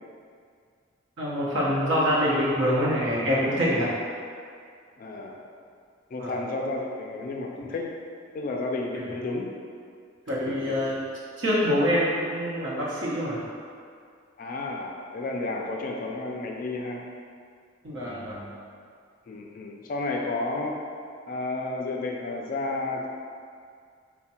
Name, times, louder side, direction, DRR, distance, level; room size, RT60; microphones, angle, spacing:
voice 1, 1.2-3.9 6.2-6.3 10.3-10.9 11.4-13.4 17.8-18.5, equal, 70° right, -6 dB, 0.9 m, -25 dB
voice 2, 5.0-5.4 6.1-7.9 8.3-9.5 10.5-10.8 14.4-17.1 19.3-20.8 21.3-23.1, left 2 dB, 45° left, 0 dB, 0.3 m, -32 dB
3.4 x 2.1 x 4.2 m, 2.2 s
head